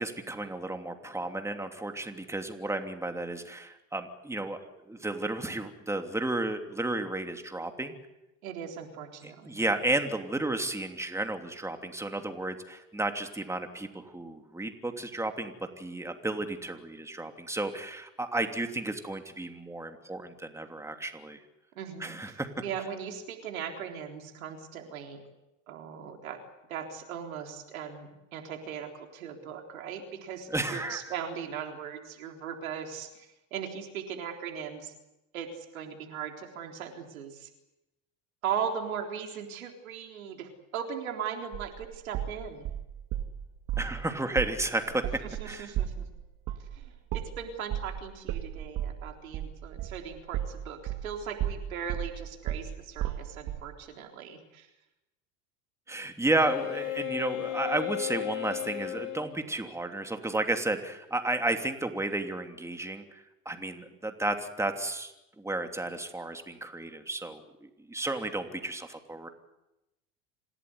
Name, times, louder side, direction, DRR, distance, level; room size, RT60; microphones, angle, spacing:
voice 1, 0.0-4.6 4.9-7.9 9.2-21.4 22.0-22.5 30.5-31.1 43.8-45.0 45.5-45.7 55.9-67.4 67.9-69.3, right 2 dB, 5° right, 5 dB, 2.9 m, -32 dB
voice 2, 8.4-9.6 21.8-25.2 25.7-26.4 26.7-34.9 35.3-37.5 38.4-42.7 45.2-46.1 46.7-54.7, right 7 dB, 85° right, 3 dB, 3.9 m, -38 dB
sound 1, 41.5-43.3 43.7-44.0 44.4-44.6 44.9-51.1 51.4-53.7, right 11 dB, 55° right, 2.3 m, -34 dB
Wind instrument woodwind instrument, 56.4-59.3, left 14 dB, 55° left, 6.8 m, -34 dB
27.0 x 17.0 x 9.7 m, 0.94 s
hypercardioid pair, 80°, 40 cm